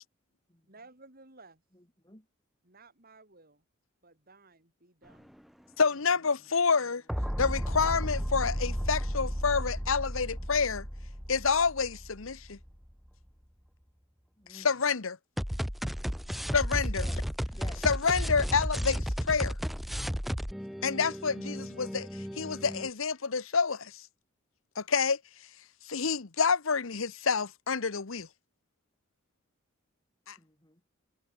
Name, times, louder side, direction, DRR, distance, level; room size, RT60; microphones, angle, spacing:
voice 1, 0.7-1.6 2.6-3.6 4.0-5.3, right 3 dB, 45° right, 6.4 m, -56 dB
voice 2, 1.7-2.3 8.8-8.9 14.4-14.7 16.9-17.2 17.5-17.8 30.4-30.8, left 1 dB, 20° left, 5.3 m, -51 dB
sound 1, 5.1-5.4 7.1-12.9 15.4-22.9, equal, ahead, 1.3 m, -34 dB
voice 3, 5.8-7.0 7.4-10.9 11.3-12.6 14.5-15.2 16.5-17.1 17.8-19.6 20.8-22.1 22.4-23.9 24.8-25.2 25.8-28.3 30.3-30.4, left 5 dB, 70° left, 1.0 m, -28 dB
head